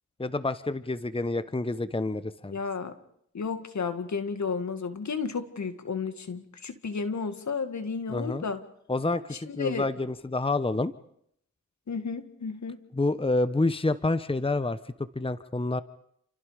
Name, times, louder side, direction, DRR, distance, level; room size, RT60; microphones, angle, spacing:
voice 1, 0.2-2.6 8.1-8.5 8.9-10.9 12.9-14.8 15.1-15.8, left 2 dB, 15° left, 14 dB, 1.1 m, -28 dB
voice 2, 2.5-2.9 3.3-8.6 9.5-9.9 11.9-12.8, left 5 dB, 65° left, 10 dB, 2.1 m, -32 dB
29.0 x 27.5 x 5.2 m, 0.71 s
cardioid pair, 45°, 31 cm